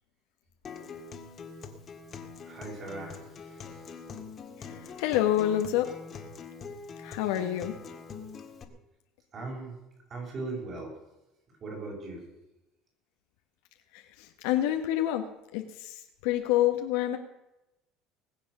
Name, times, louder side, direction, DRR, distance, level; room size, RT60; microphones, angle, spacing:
Acoustic guitar, 0.6-8.6, left 5 dB, 35° left, 1.8 m, -44 dB
voice 1, 2.5-3.7 9.3-9.8 10.1-10.9 11.6-12.2, right 3 dB, 40° right, -1 dB, 7.3 m, -39 dB
voice 2, 4.6-5.9 7.0-7.7 13.9-15.2 15.5-17.2, left 12 dB, 85° left, 5 dB, 1.3 m, -28 dB
20.0 x 7.8 x 6.7 m, 0.93 s
supercardioid pair, 115°, 0 cm